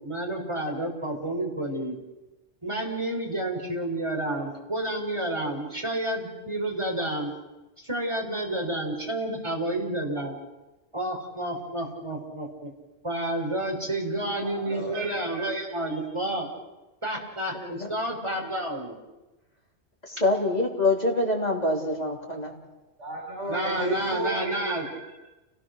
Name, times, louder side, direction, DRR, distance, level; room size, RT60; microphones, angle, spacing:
voice 1, 0.0-2.0 2.6-7.3 7.8-10.4 10.9-12.7 13.0-16.5 17.0-19.0 23.5-24.9, right 1 dB, 25° right, 0 dB, 4.5 m, -30 dB
voice 2, 14.4-15.5 23.0-25.1, right 1 dB, 90° right, -2 dB, 5.8 m, -33 dB
voice 3, 17.5-17.9 20.1-22.5, left 2 dB, 35° left, 0 dB, 3.8 m, -25 dB
30.0 x 18.5 x 6.6 m, 1.1 s
omnidirectional pair, 1.2 m